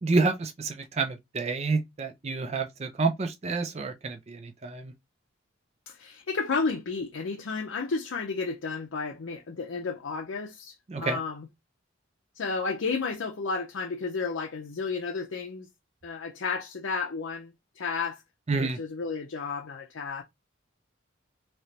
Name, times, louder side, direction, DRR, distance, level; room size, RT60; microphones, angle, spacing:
voice 1, 0.0-4.9 10.9-11.2 18.5-18.8, right 3 dB, 30° right, 0.4 m, -29 dB
voice 2, 5.9-11.5 12.4-15.7 16.0-18.2 18.6-20.2, left 4 dB, 75° left, 0.6 m, -32 dB
3.2 x 2.9 x 2.7 m
head